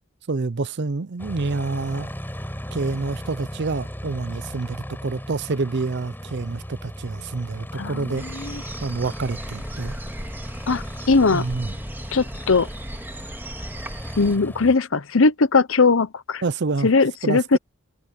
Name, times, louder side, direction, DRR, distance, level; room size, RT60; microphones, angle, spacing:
voice 1, 0.3-2.1 2.7-8.3 8.8-10.0 11.3-11.7 16.4-16.9 17.2-17.6, right 3 dB, 50° right, 0.5 m, -27 dB
Aircraft, 1.2-14.8, equal, 10° left, 5.3 m, -37 dB
voice 2, 7.8-8.6 10.7-11.5 12.1-12.7 14.2-16.4 16.8-17.6, left 4 dB, 60° left, 0.8 m, -20 dB
sound 1, 8.2-14.4, right 1 dB, 10° right, 2.5 m, -36 dB
head